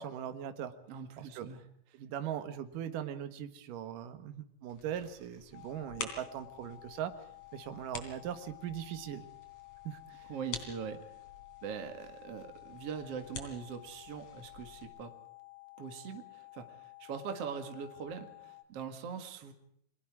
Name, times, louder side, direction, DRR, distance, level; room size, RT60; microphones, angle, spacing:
voice 1, 0.0-0.7 1.2-1.5 1.9-7.1 7.5-9.2 9.8-10.3, right 10 dB, 70° right, 9 dB, 2.9 m, -40 dB
voice 2, 0.9-1.6 10.3-11.0 11.6-15.1 15.8-19.5, right 6 dB, 50° right, 6 dB, 2.5 m, -42 dB
sound 1, 4.7-14.9, left 5 dB, 50° left, 4.1 m, -49 dB
sound 2, 5.5-18.7, left 23 dB, 65° left, 3.0 m, -53 dB
29.5 x 22.5 x 4.8 m, 0.70 s
omnidirectional pair, 4.2 m